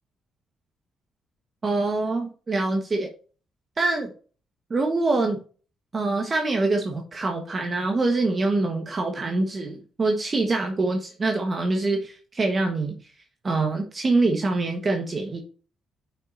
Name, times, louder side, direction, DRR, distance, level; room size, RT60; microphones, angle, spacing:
voice 1, 1.6-3.1 3.8-4.1 4.7-5.4 5.9-13.0 13.4-15.4, right 3 dB, 35° right, 1.4 m, -24 dB
9.3 x 5.8 x 2.7 m
cardioid pair, 90°, 0 cm